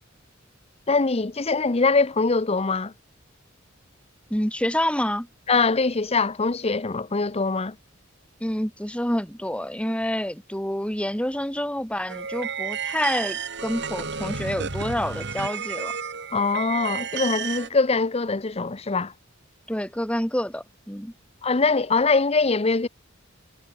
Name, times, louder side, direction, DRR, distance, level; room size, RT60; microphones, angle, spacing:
voice 1, 0.9-2.9 5.5-7.8 16.3-19.1 21.4-22.9, left 4 dB, 30° left, 0.8 m, -23 dB
voice 2, 4.3-5.3 8.4-16.0 19.7-21.1, left 1 dB, 5° left, 3.7 m, -28 dB
sound 1, 12.1-17.7, right 6 dB, 60° right, 4.8 m, -32 dB
head